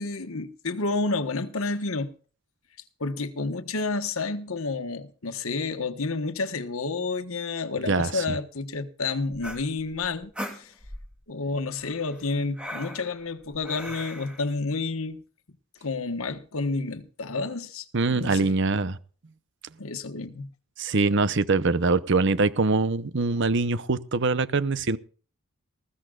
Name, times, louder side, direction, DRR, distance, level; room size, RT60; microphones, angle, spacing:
voice 1, 0.0-2.1 3.0-10.7 11.3-15.2 15.8-17.8 18.1-18.5 19.8-20.5, left 3 dB, 70° left, 1.3 m, -30 dB
voice 2, 7.9-8.2 17.9-19.0 20.8-25.0, right 3 dB, 55° right, 0.8 m, -23 dB
sound 1, 9.3-11.2 11.8-14.5, equal, 5° right, 2.5 m, -39 dB
20.0 x 15.5 x 2.4 m
head